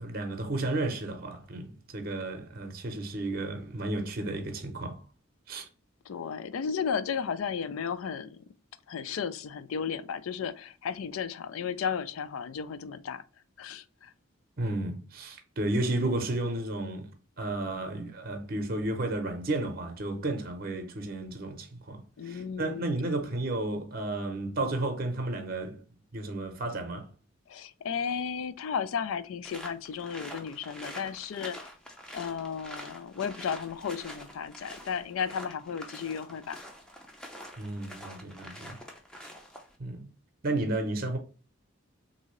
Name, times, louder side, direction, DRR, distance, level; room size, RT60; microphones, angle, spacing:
voice 1, 0.0-5.0 5.5-5.7 14.6-17.1 17.4-25.8 26.1-27.1 37.6-38.8 39.2-39.3 39.8-40.1 40.4-41.2, right 2 dB, 45° right, 0.7 m, -32 dB
voice 2, 6.1-8.4 8.9-13.2 13.6-14.1 22.2-23.0 27.5-31.6 32.1-36.6, left 7 dB, 80° left, 0.4 m, -34 dB
sound 1, 29.4-39.8, equal, 5° left, 0.5 m, -46 dB
3.6 x 2.6 x 3.0 m
head